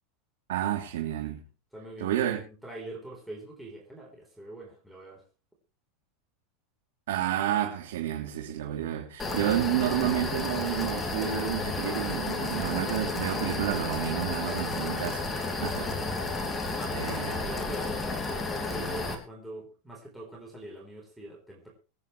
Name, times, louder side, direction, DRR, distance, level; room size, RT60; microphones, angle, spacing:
voice 1, 0.5-1.4 2.0-2.4 7.1-15.3 15.6-15.9 16.9-17.3, right 12 dB, 90° right, 3.3 m, -30 dB
voice 2, 1.7-5.2 15.9-16.1 16.7-21.7, right 2 dB, 5° right, 4.2 m, -43 dB
sound 1, 9.2-19.1, left 3 dB, 15° left, 2.9 m, -32 dB
23.5 x 9.8 x 3.3 m
supercardioid pair, 150°, 0 cm